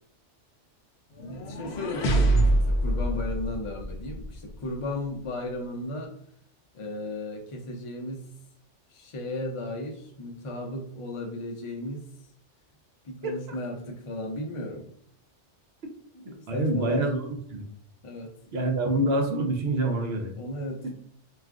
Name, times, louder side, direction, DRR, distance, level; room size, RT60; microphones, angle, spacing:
sound 1, 1.2-4.3, right 1 dB, 70° left, 0.8 m, -25 dB
voice 1, 1.2-6.1 6.7-8.2 8.9-12.1 13.0-14.9 16.1-17.1 18.0-18.3 20.4-20.9, left 1 dB, 50° left, 1 dB, 0.4 m, -35 dB
voice 2, 16.5-17.7 18.5-20.3, right 2 dB, 65° right, 3 dB, 0.7 m, -26 dB
2.4 x 2.3 x 3.5 m, 0.67 s
omnidirectional pair, 1.2 m